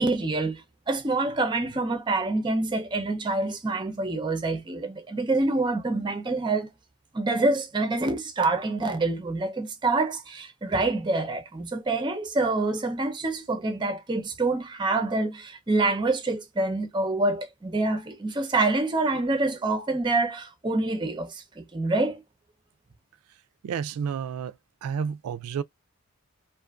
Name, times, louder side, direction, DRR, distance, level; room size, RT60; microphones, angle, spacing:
voice 1, 0.0-6.7 7.1-22.2, right 2 dB, 20° right, 0.5 m, -26 dB
voice 2, 23.6-24.5 24.8-25.6, right 7 dB, 85° right, 0.3 m, -30 dB
2.5 x 2.4 x 2.3 m
head